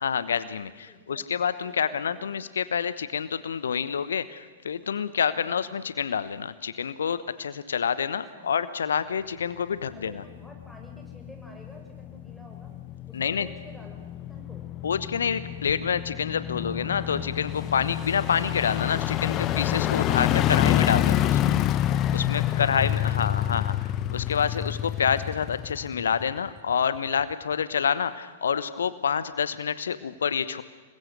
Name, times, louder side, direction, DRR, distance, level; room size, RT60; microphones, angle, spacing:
voice 1, 0.0-10.2 13.1-13.5 14.8-23.8 24.1-30.6, left 7 dB, 70° left, 15 dB, 1.1 m, -28 dB
voice 2, 0.9-1.3 1.6-2.3 5.3-5.6 8.3-8.5 9.9-12.7 13.1-14.7, equal, 5° left, 1 dB, 6.3 m, -50 dB
sound 1, 10.0-26.6 27.0-27.1, left 12 dB, 30° left, 1.0 m, -28 dB
27.5 x 22.0 x 6.6 m, 1.4 s
figure-of-eight pair, 105°, 0 cm